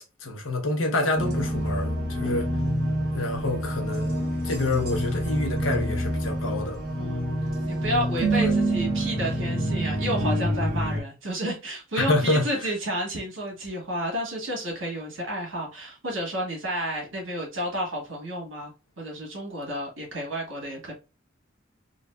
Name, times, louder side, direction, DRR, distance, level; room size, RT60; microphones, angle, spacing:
voice 1, 0.2-2.5 3.1-6.8 8.4-8.5 12.0-12.7, left 2 dB, 80° left, 0.9 m, -27 dB
sound 1, 1.2-11.0, right 1 dB, 55° right, 1.1 m, -27 dB
voice 2, 2.2-2.6 7.0-7.3 7.6-18.7 19.0-20.9, equal, 80° right, 1.5 m, -31 dB
3.8 x 2.4 x 2.3 m
head